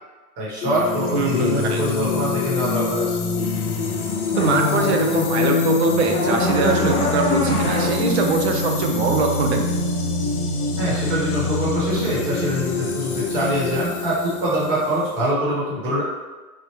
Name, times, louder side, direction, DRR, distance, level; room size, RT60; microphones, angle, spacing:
voice 1, 0.4-3.1 10.8-16.0, equal, 30° right, -7 dB, 1.2 m, -24 dB
sound 1, 0.6-15.3, left 3 dB, 75° left, 0.7 m, -26 dB
voice 2, 1.1-1.8 4.4-9.6, right 4 dB, 45° right, 3 dB, 0.5 m, -22 dB
sound 2, 4.3-9.5, left 3 dB, 15° left, 0.8 m, -23 dB
3.3 x 2.2 x 3.0 m, 1.3 s
hypercardioid pair, 150°, 45 cm